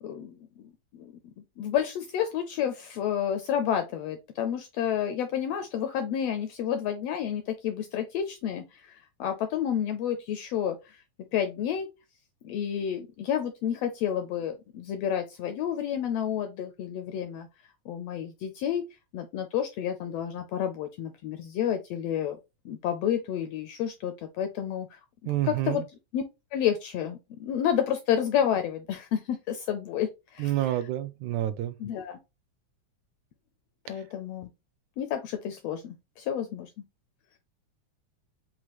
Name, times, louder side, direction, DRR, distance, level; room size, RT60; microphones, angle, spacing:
voice 1, 0.0-1.1 1.6-11.0 11.3-11.9 12.4-17.5 17.9-18.9 19.1-22.4 22.6-25.8 26.1-26.2 26.5-30.9 31.8-32.2 33.9-34.5 35.0-36.8, left 9 dB, 80° left, 1.5 m, -30 dB
voice 2, 25.3-25.9 30.4-31.8, right 13 dB, 80° right, 1.9 m, -28 dB
5.9 x 2.5 x 2.9 m
omnidirectional pair, 3.4 m